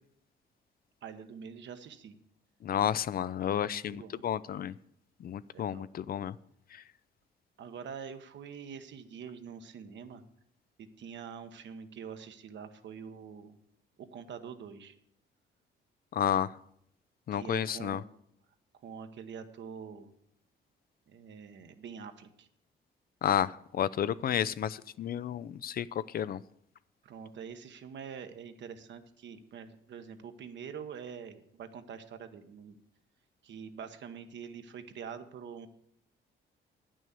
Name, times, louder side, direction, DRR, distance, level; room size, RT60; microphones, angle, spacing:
voice 1, 1.0-2.2 3.5-4.2 5.5-5.8 7.6-10.2 10.8-13.6 14.1-15.0 17.3-18.1 18.8-20.1 21.1-22.5 27.0-32.8 33.4-35.7, right 7 dB, 65° right, 1.1 m, -45 dB
voice 2, 2.6-4.7 5.2-6.4 6.7-6.8 16.1-16.5 17.3-18.0 23.2-26.4, left 10 dB, 50° left, 0.4 m, -31 dB
9.2 x 6.2 x 8.1 m
cardioid pair, 90°, 20 cm